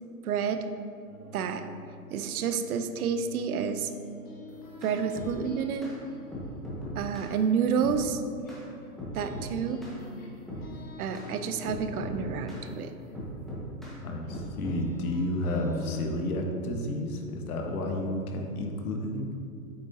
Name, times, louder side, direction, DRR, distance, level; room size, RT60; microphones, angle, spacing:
voice 1, 0.2-0.7 1.3-1.6 2.1-3.9 4.8-5.9 7.0-8.2 9.1-9.8 11.0-12.9, right 6 dB, 65° right, 9 dB, 0.7 m, -29 dB
sound 1, 1.1-8.9 9.1-16.0, left 2 dB, 20° left, 1.1 m, -47 dB
sound 2, 4.5-5.3 5.8-6.0 6.3-7.3 7.8-8.0 8.5-8.6 9.0-9.5 9.8-10.0 10.5-10.7 11.1-11.3 11.6-12.7 13.1-14.0 14.3-14.8, equal, ahead, 1.4 m, -39 dB
voice 2, 14.0-19.3, left 1 dB, 65° left, 2 dB, 1.3 m, -31 dB
8.0 x 6.2 x 2.8 m, 2.4 s
hypercardioid pair, 130°, 48 cm